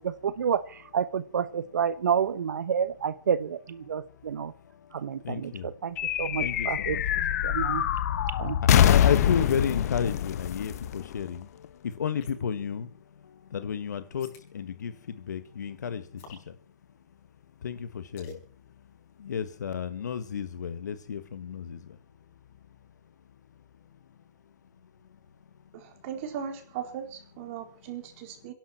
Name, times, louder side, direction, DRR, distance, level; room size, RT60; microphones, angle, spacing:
voice 1, 0.0-4.5 4.9-7.0 7.4-7.8 8.4-8.8, right 7 dB, 85° right, 1.1 m, -29 dB
voice 2, 3.8-7.0 7.3-7.6 8.0-26.1 27.5-28.5, left 7 dB, 85° left, 1.7 m, -35 dB
sound 1, 6.0-11.7, left 10 dB, 60° left, 1.3 m, -25 dB
sound 2, 12.2-12.6 14.2-14.5 16.2-16.5 18.2-18.4, left 4 dB, 35° left, 6.5 m, -48 dB
voice 3, 25.7-28.5, right 8 dB, 45° right, 4.4 m, -38 dB
27.5 x 11.5 x 4.4 m
hypercardioid pair, 135°, 9 cm